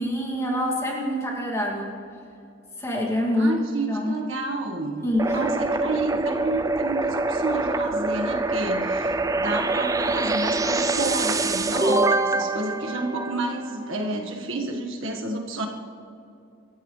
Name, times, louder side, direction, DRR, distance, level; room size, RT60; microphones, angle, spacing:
voice 1, 0.0-1.9 2.8-3.5 3.9-4.1 5.0-5.2, left 1 dB, 15° left, -2 dB, 2.4 m, -25 dB
voice 2, 3.4-15.7, right 2 dB, 65° right, 1 dB, 1.6 m, -30 dB
sound 1, 5.2-13.8, right 3 dB, 15° right, 0.5 m, -25 dB
25.0 x 14.5 x 3.3 m, 2.6 s
head